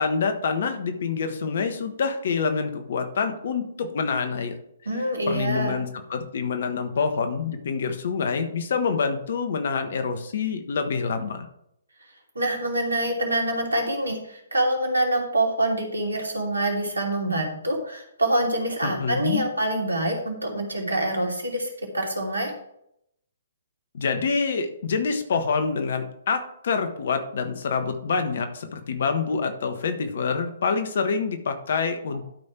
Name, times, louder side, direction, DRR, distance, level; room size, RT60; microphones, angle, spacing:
voice 1, 0.0-4.6 5.3-11.5 18.8-19.5 23.9-32.3, left 5 dB, 55° left, 7 dB, 1.3 m, -26 dB
voice 2, 4.9-5.8 12.3-21.7 21.9-22.5, right 1 dB, 75° right, 1 dB, 2.8 m, -25 dB
12.0 x 5.4 x 4.6 m, 0.75 s
figure-of-eight pair, 125°, 0 cm